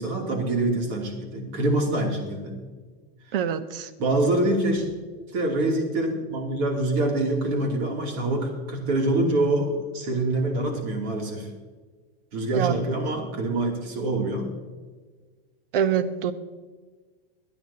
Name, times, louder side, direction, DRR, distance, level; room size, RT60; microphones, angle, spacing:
voice 1, 0.0-2.6 4.0-4.9 5.3-11.5 12.3-14.5, right 2 dB, 45° right, 1 dB, 3.0 m, -25 dB
voice 2, 3.3-3.9 12.5-12.8 15.7-16.3, right 8 dB, 65° right, 13 dB, 1.0 m, -25 dB
24.5 x 9.2 x 2.9 m, 1.4 s
supercardioid pair, 170°, 31 cm